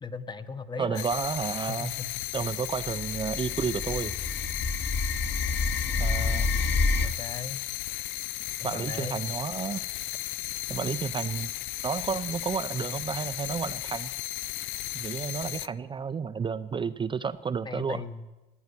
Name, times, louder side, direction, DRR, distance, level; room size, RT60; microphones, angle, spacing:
voice 1, 0.0-1.0 1.7-2.1 2.5-2.6 7.0-7.6 8.6-9.2 17.6-18.3, left 4 dB, 25° left, 11 dB, 0.9 m, -38 dB
voice 2, 0.8-1.9 2.3-4.1 6.0-6.5 8.6-9.8 10.7-11.5 11.8-14.1 14.9-18.0, right 6 dB, 25° right, 10 dB, 0.5 m, -31 dB
sound 1, 1.0-15.7, left 18 dB, 85° left, 0.4 m, -35 dB
sound 2, 2.5-2.6 2.8-7.1, left 3 dB, 60° left, 1.9 m, -28 dB
15.5 x 9.3 x 9.8 m, 1.1 s
cardioid pair, 115°, 19 cm